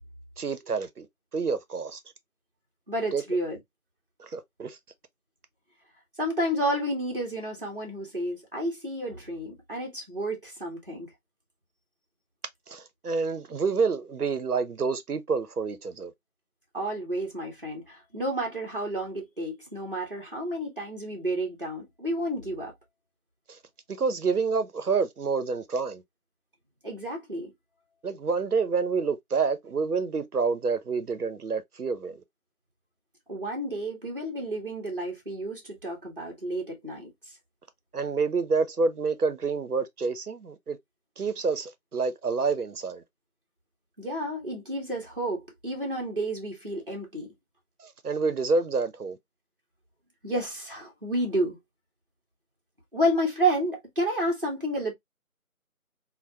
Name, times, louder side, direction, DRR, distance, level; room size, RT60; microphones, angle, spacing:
voice 1, 0.4-1.1 1.3-2.0 3.1-3.2 4.2-4.8 12.7-16.1 23.5-23.6 23.9-26.0 28.0-32.2 37.9-40.8 41.2-43.0 47.8-49.2, right 4 dB, 85° right, 0.8 m, -28 dB
voice 2, 2.9-3.6 6.2-11.1 16.7-22.7 26.8-27.5 33.3-37.3 44.0-47.3 50.2-51.6 52.9-54.9, right 1 dB, 35° right, 0.9 m, -30 dB
3.4 x 2.1 x 2.5 m
figure-of-eight pair, 170°, 44 cm